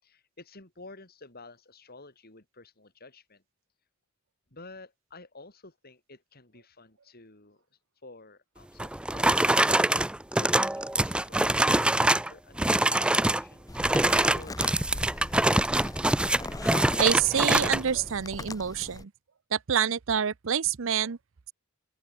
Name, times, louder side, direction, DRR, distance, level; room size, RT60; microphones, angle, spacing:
voice 1, 0.0-3.4 4.5-7.6 8.0-9.5 10.3-13.9 14.2-15.9, left 2 dB, 45° left, 4.8 m, -51 dB
sound 1, 8.8-12.3 12.6-13.4 13.8-17.8, right 1 dB, 5° right, 0.3 m, -24 dB
sound 2, 13.7-19.0, left 2 dB, 15° left, 0.8 m, -40 dB
voice 2, 17.0-19.1 19.5-21.2, right 8 dB, 65° right, 0.6 m, -27 dB
open air
head